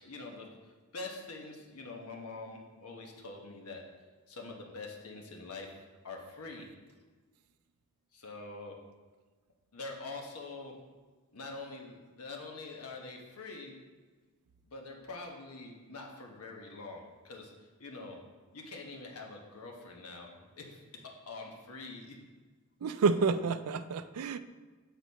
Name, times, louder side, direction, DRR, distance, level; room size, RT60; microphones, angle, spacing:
voice 1, 0.0-3.8 4.3-5.7 6.0-6.7 8.1-8.8 9.7-10.7 11.3-13.8 14.6-18.2 18.5-20.8 21.3-22.2, left 3 dB, 85° left, 1 dB, 1.2 m, -45 dB
voice 2, 22.8-24.4, right 4 dB, 80° right, 12 dB, 0.4 m, -29 dB
8.3 x 4.1 x 4.1 m, 1.4 s
head